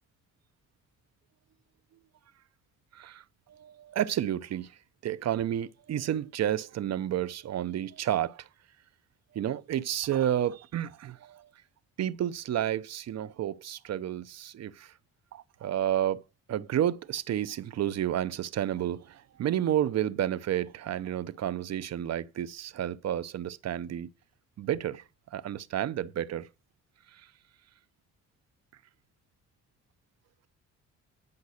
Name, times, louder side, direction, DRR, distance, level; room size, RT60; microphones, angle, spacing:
voice 1, 2.9-8.5 9.3-11.5 12.0-15.0 15.3-16.2 16.5-24.1 24.6-26.5 27.1-27.3, right 11 dB, 60° right, 0.8 m, -31 dB
10.5 x 5.4 x 6.4 m
cardioid pair, 90°, 30 cm